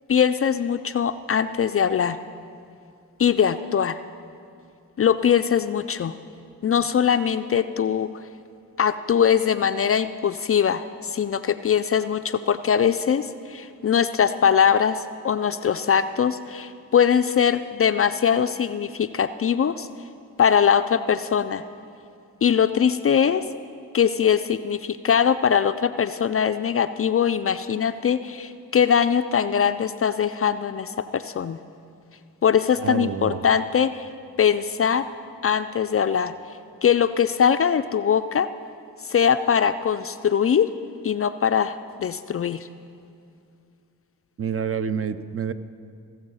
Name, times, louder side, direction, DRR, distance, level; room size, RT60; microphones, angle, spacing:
voice 1, 0.1-2.2 3.2-4.0 5.0-6.1 6.6-8.1 8.8-19.9 20.4-21.6 22.4-23.4 23.9-31.6 32.4-34.1 34.4-35.1 35.4-36.3 36.8-38.5 39.1-40.7 41.0-42.7, left 8 dB, 35° left, 11 dB, 0.4 m, -21 dB
voice 2, 32.8-33.5 44.4-45.5, right 7 dB, 35° right, 12 dB, 0.6 m, -28 dB
15.5 x 7.2 x 5.5 m, 2.5 s
supercardioid pair, 45°, 39 cm